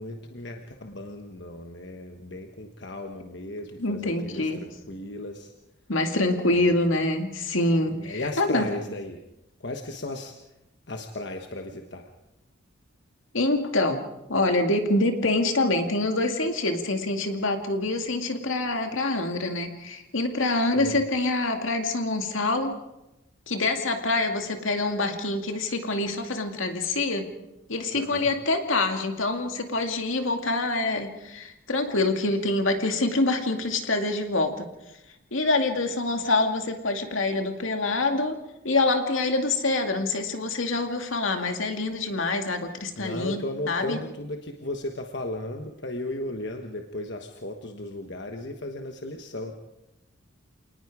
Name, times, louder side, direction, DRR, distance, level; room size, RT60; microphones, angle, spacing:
voice 1, 0.0-5.5 6.5-6.7 7.9-9.2 9.6-10.3 10.9-12.1 20.8-21.0 27.9-28.3 43.0-49.5, left 2 dB, 55° left, 4 dB, 1.3 m, -35 dB
voice 2, 3.8-4.6 5.9-8.7 13.3-14.0 14.3-22.8 23.5-27.3 27.7-34.7 35.3-38.4 38.6-44.0, left 2 dB, 75° left, 5 dB, 2.4 m, -26 dB
28.0 x 19.5 x 4.9 m, 0.93 s
head